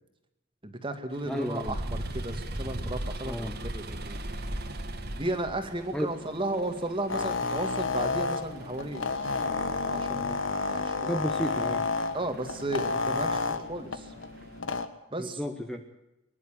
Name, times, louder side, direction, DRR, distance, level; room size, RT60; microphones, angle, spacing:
voice 1, 0.6-4.2 5.1-11.1 12.1-14.1 15.1-15.4, right 2 dB, 25° right, 7 dB, 2.2 m, -35 dB
sound 1, 1.1-14.6, right 1 dB, 45° right, 2.1 m, -40 dB
voice 2, 1.3-1.8 3.2-3.5 5.9-6.1 11.0-11.9 15.2-15.8, equal, 5° left, 4 dB, 1.3 m, -32 dB
sound 2, 7.1-14.9, left 3 dB, 60° left, 1.6 m, -31 dB
24.5 x 11.5 x 9.1 m, 0.94 s
head